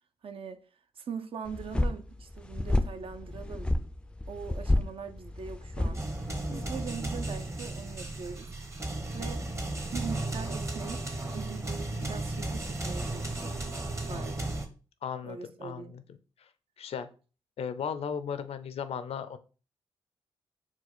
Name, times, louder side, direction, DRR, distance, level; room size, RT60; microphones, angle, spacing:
voice 1, 0.2-0.6 1.0-3.7 4.3-6.0 6.5-8.5 9.1-9.5 9.9-13.6 14.0-14.5 15.2-15.9, right 6 dB, 55° right, 0.5 m, -41 dB
sound 1, 1.5-6.9, left 1 dB, 10° left, 0.4 m, -31 dB
sound 2, 5.9-14.6, right 2 dB, 25° right, 0.9 m, -35 dB
voice 2, 14.1-14.4 15.0-16.0 16.8-17.1 17.6-19.4, left 7 dB, 70° left, 0.4 m, -36 dB
4.3 x 2.3 x 4.2 m
cardioid pair, 55°, 11 cm